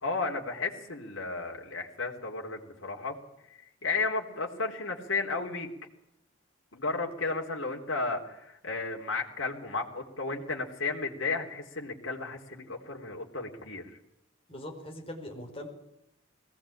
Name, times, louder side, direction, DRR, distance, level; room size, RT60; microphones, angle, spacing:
voice 1, 0.0-3.2 3.5-5.7 6.7-14.0, left 3 dB, 70° left, 0 dB, 3.6 m, -33 dB
voice 2, 14.5-15.7, left 1 dB, 30° left, 1 dB, 5.0 m, -41 dB
21.5 x 18.0 x 8.8 m, 0.84 s
head